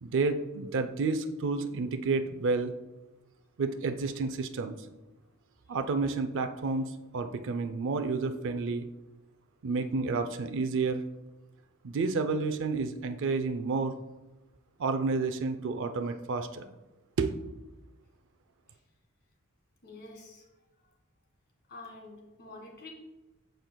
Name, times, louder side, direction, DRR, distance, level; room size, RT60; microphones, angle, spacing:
voice 1, 0.0-2.7 3.6-4.8 5.7-8.9 9.6-11.0 11.8-14.0 14.8-16.7 17.2-17.4, right 4 dB, 60° right, 7 dB, 0.5 m, -30 dB
voice 2, 19.8-20.4 21.7-22.9, left 2 dB, 50° left, 0 dB, 1.8 m, -47 dB
12.5 x 4.5 x 2.2 m, 1.1 s
head